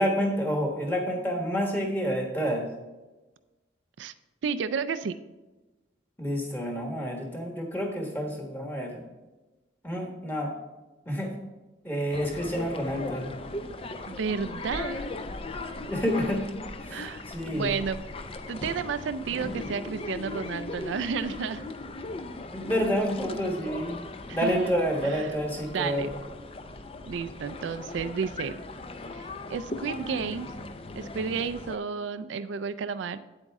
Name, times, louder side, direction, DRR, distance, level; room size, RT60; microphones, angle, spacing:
voice 1, 0.0-2.7 6.2-9.0 9.8-10.5 11.1-11.3 11.8-13.3 15.9-16.4 16.8-17.7 22.5-24.0 24.3-26.1, equal, 10° left, 1 dB, 1.4 m, -29 dB
voice 2, 4.4-5.1 14.1-15.1 16.9-17.3 17.5-18.0 18.5-21.6 24.3-24.7 25.0-25.4 25.7-26.1 27.0-28.6 29.1-30.5 31.0-33.2, right 6 dB, 75° right, 13 dB, 0.4 m, -32 dB
sound 1, 12.1-31.8, left 2 dB, 30° left, 0.5 m, -38 dB
8.8 x 8.0 x 3.6 m, 1.1 s
head